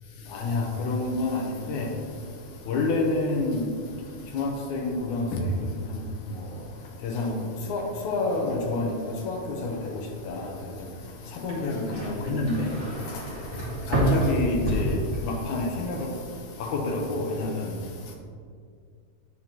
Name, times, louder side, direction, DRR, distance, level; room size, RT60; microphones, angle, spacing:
voice 1, 0.3-1.4 1.7-1.9 2.7-3.6 4.3-5.2 7.0-7.3 7.7-8.8 9.3-9.4 9.6-9.7 10.3-10.4 11.4-12.7 14.1-15.0 15.2-16.0 16.7-17.5, left 3 dB, 70° left, 1 dB, 2.0 m, -27 dB
sound 1, 11.5-15.6 16.0-16.5, right 1 dB, 15° right, 1.1 m, -28 dB
10.0 x 8.0 x 3.0 m, 2.1 s
omnidirectional pair, 4.1 m